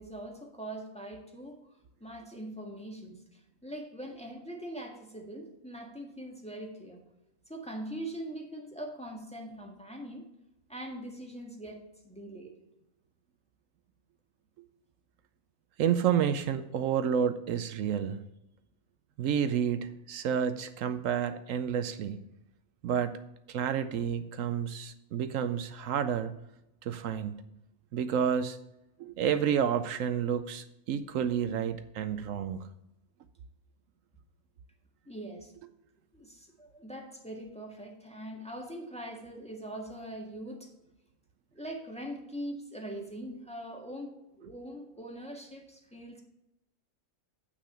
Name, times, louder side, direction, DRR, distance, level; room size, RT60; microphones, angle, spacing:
voice 1, 0.0-1.6 2.0-7.0 7.5-10.2 10.7-12.5 35.1-35.5 36.1-40.7 41.5-46.2, right 1 dB, 5° left, 0 dB, 1.5 m, -42 dB
voice 2, 15.8-18.2 19.2-22.2 22.8-23.2 23.5-26.3 26.8-27.4 27.9-28.6 29.0-32.6, right 8 dB, 75° right, 11 dB, 1.0 m, -30 dB
8.3 x 6.2 x 5.6 m, 0.88 s
omnidirectional pair, 1.4 m